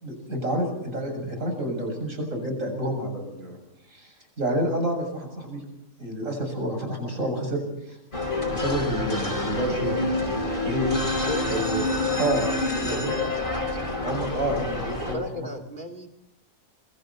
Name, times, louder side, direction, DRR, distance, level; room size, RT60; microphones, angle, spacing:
voice 1, 0.0-3.6 3.9-5.6 6.0-7.6 7.9-8.0 8.5-10.2 10.7-10.9 11.4-11.8 12.2-12.5 12.8-13.1 14.0-15.5, right 1 dB, 60° right, 4 dB, 7.6 m, -29 dB
sound 1, 8.1-15.1, left 2 dB, 35° left, 5.1 m, -27 dB
voice 2, 11.3-11.6 12.7-13.5 15.0-16.1, left 1 dB, 35° right, 4 dB, 2.8 m, -35 dB
27.5 x 23.0 x 4.3 m, 0.88 s
omnidirectional pair, 1.6 m